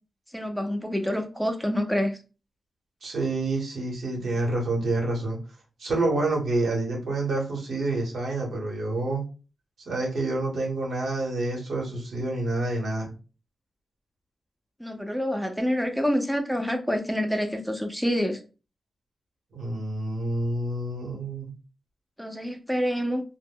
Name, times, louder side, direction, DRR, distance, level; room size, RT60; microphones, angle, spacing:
voice 1, 0.3-2.2 14.8-18.4 22.2-23.2, equal, ahead, 0.5 m, -27 dB
voice 2, 3.0-5.4 5.8-9.2 9.9-13.1 19.5-21.5, right 2 dB, 85° right, 1.0 m, -28 dB
2.1 x 2.1 x 3.5 m
cardioid pair, 65°, 0 cm